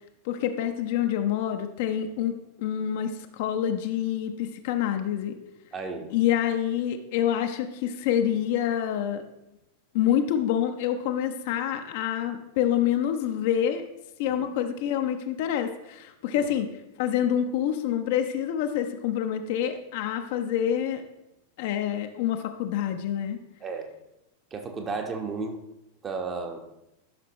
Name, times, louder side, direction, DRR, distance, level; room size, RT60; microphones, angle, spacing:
voice 1, 0.2-2.3 2.6-5.4 6.1-9.2 9.9-13.9 14.2-21.0 21.6-23.4, left 10 dB, 50° left, 6 dB, 0.7 m, -27 dB
voice 2, 5.7-6.1 14.4-14.5 16.3-16.5 23.6-23.9 24.5-25.6 26.0-26.6, right 4 dB, 25° right, 4 dB, 1.0 m, -33 dB
12.0 x 5.9 x 3.0 m, 0.90 s
figure-of-eight pair, 90°, 0 cm